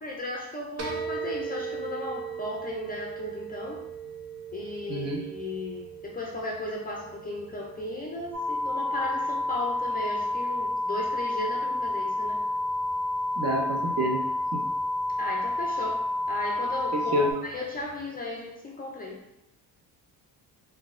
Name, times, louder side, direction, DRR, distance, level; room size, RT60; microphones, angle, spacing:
voice 1, 0.0-3.8 4.5-12.4 15.2-19.2, left 2 dB, 25° left, -2 dB, 0.3 m, -36 dB
sound 1, 0.8-18.1, right 6 dB, 75° right, 0.8 m, -42 dB
voice 2, 4.9-5.2 13.4-14.2 14.5-14.6 16.9-17.3, equal, 40° right, 1 dB, 0.6 m, -28 dB
sound 2, 8.3-17.3, left 1 dB, ahead, 1.0 m, -29 dB
3.9 x 2.6 x 2.4 m, 0.86 s
cardioid pair, 155°, 39 cm